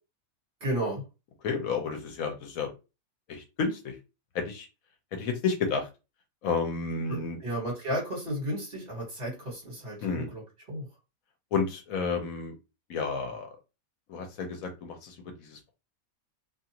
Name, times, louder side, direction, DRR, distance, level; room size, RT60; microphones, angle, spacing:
voice 1, 0.6-1.0 7.1-10.4 10.7-10.9, equal, 40° right, -3 dB, 1.6 m, -33 dB
voice 2, 1.4-2.7 3.3-3.9 4.3-4.7 5.1-5.8 6.4-7.4 10.0-10.3 11.5-12.5 12.9-13.5 14.1-15.1 15.4-15.6, left 5 dB, 75° left, 4 dB, 1.1 m, -31 dB
2.8 x 2.4 x 2.8 m, 0.29 s
omnidirectional pair, 1.5 m